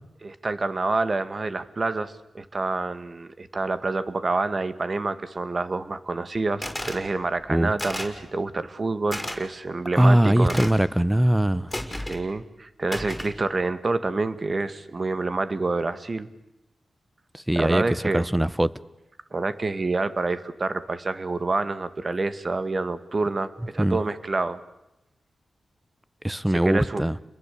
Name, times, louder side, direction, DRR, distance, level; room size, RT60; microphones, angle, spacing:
voice 1, 0.2-10.6 12.0-16.3 17.6-18.3 19.3-24.6 26.5-27.0, right 3 dB, 50° right, 1.9 m, -27 dB
sound 1, 6.6-7.0 7.8-8.2 9.1-9.4 10.5-10.9 11.7-12.2 12.9-13.4, left 1 dB, 10° left, 5.8 m, -32 dB
voice 2, 9.9-11.7 17.3-18.7 23.8-24.0 26.2-27.2, right 1 dB, 10° right, 1.1 m, -21 dB
30.0 x 21.5 x 8.6 m
cardioid pair, 45°, 0 cm